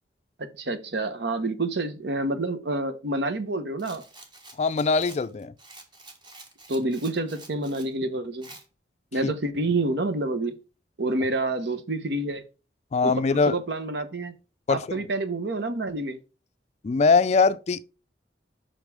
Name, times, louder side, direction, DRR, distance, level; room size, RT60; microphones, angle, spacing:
voice 1, 0.4-4.0 6.7-8.5 9.1-10.6 11.0-12.4 13.0-14.3 14.7-16.2, right 2 dB, 70° right, 1.0 m, -28 dB
Rattle, 3.8-7.9 8.4-8.6, right 2 dB, 25° right, 1.2 m, -48 dB
voice 2, 4.6-5.5 9.2-9.3 12.9-13.6 14.7-14.8 16.8-17.8, left 4 dB, 40° left, 0.3 m, -21 dB
5.6 x 5.3 x 4.8 m
head